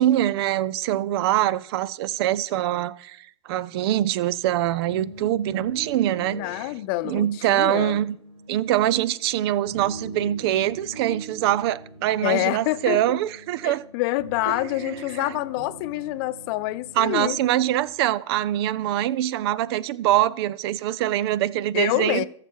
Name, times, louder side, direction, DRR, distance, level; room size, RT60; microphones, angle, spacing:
voice 1, 0.0-3.2 3.5-6.7 7.0-8.2 8.5-13.8 15.2-15.3 17.0-22.2, right 13 dB, 60° right, 0.5 m, -24 dB
sound 1, 4.4-17.8, right 1 dB, 90° right, 1.7 m, -42 dB
voice 2, 6.3-8.0 12.2-13.2 13.6-17.4 21.7-22.2, left 18 dB, 55° left, 0.5 m, -27 dB
14.0 x 6.8 x 4.6 m
hypercardioid pair, 100°, 15 cm